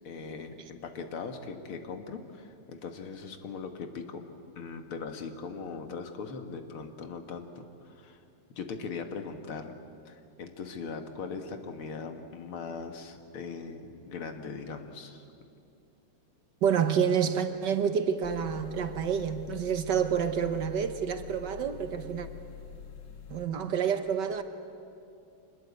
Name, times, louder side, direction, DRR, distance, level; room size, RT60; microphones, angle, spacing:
voice 1, 0.0-4.3 4.6-8.2 8.6-9.7 10.1-15.2, left 5 dB, 90° left, 6 dB, 2.4 m, -40 dB
voice 2, 16.6-22.3 23.3-24.4, right 7 dB, 60° right, 8 dB, 1.6 m, -28 dB
sound 1, 18.2-23.5, left 7 dB, 60° left, 1.8 m, -46 dB
25.0 x 20.5 x 8.3 m, 2.6 s
omnidirectional pair, 2.3 m